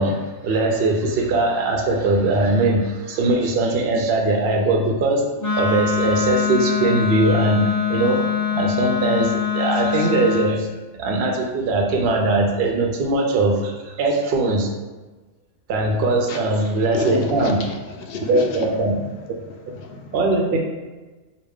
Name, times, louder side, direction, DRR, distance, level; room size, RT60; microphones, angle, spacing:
voice 1, 0.0-5.2 5.6-8.2 8.5-10.7 11.0-14.7 15.7-17.6 18.3-19.0 20.1-20.6, right 2 dB, 70° right, 1 dB, 0.5 m, -20 dB
Wind instrument woodwind instrument, 5.4-10.6, left 7 dB, 20° left, 0.4 m, -23 dB
voice 2, 16.9-18.9 19.5-20.1, left 3 dB, 65° left, 2 dB, 0.6 m, -31 dB
4.8 x 2.2 x 3.5 m, 1.2 s
omnidirectional pair, 1.5 m